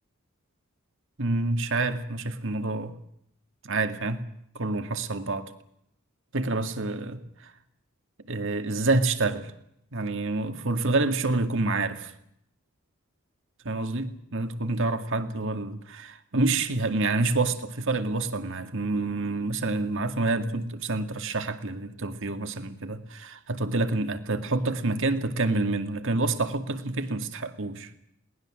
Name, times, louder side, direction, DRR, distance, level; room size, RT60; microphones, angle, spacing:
voice 1, 1.2-2.9 3.6-4.2 4.5-5.5 6.3-7.5 8.3-9.5 9.9-12.1 13.7-27.9, right 2 dB, 65° right, 2.2 m, -28 dB
22.0 x 19.5 x 7.8 m
head